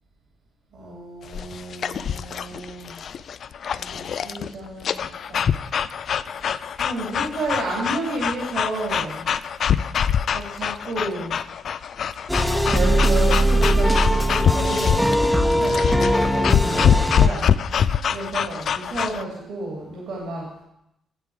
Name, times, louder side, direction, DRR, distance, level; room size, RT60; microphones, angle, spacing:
voice 1, 0.7-2.9 3.7-5.5 6.8-9.3 10.3-11.3 12.6-17.6 18.1-20.5, right 2 dB, 65° right, -4 dB, 2.7 m, -31 dB
sound 1, 1.2-19.2, left 8 dB, 60° left, 0.3 m, -24 dB
sound 2, 12.3-17.3, equal, ahead, 0.9 m, -20 dB
8.4 x 8.0 x 4.8 m, 0.82 s
hypercardioid pair, 45°, 0 cm